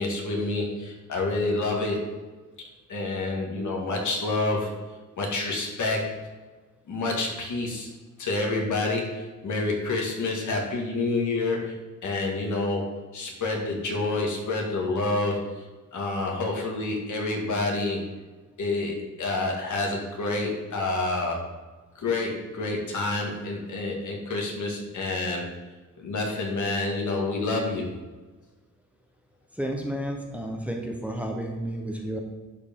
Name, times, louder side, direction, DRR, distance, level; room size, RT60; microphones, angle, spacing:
voice 1, 0.0-2.1 2.9-4.8 5.2-6.3 6.9-7.9 8.2-15.5 15.9-18.0 18.6-21.4 22.0-25.5 26.0-27.9, left 2 dB, 65° left, 0 dB, 2.0 m, -28 dB
voice 2, 29.6-32.2, right 1 dB, 5° right, 2 dB, 0.9 m, -31 dB
11.0 x 4.7 x 3.7 m, 1.3 s
cardioid pair, 115°, 32 cm